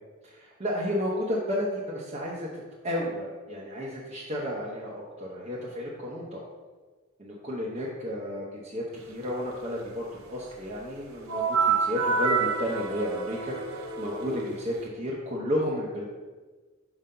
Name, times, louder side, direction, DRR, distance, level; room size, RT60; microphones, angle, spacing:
voice 1, 0.2-2.5 2.8-6.5 7.2-16.0, left 1 dB, 30° right, -5 dB, 0.8 m, -32 dB
sound 1, 11.3-14.9, right 5 dB, 85° right, 0.8 m, -28 dB
4.9 x 3.8 x 5.5 m, 1.3 s
head